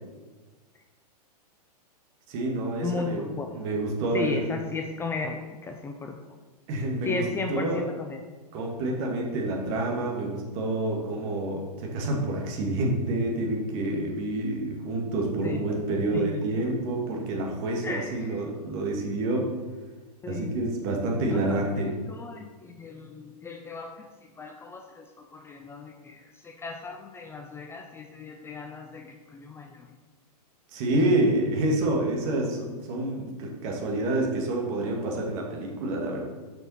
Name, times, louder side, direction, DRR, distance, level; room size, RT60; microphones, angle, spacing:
voice 1, 2.3-3.3 3.5-4.5 6.7-7.2 7.5-7.8 8.5-19.5 20.3-21.9 30.7-36.2, right 2 dB, 45° right, 0 dB, 2.1 m, -28 dB
voice 2, 2.8-3.6 4.1-6.1 7.0-8.2 15.4-15.6 16.1-16.4 17.8-18.3 20.2-20.6 21.3-24.1 24.4-29.9, left 4 dB, 10° left, 4 dB, 0.5 m, -35 dB
6.9 x 6.1 x 5.7 m, 1.3 s
hypercardioid pair, 130°, 21 cm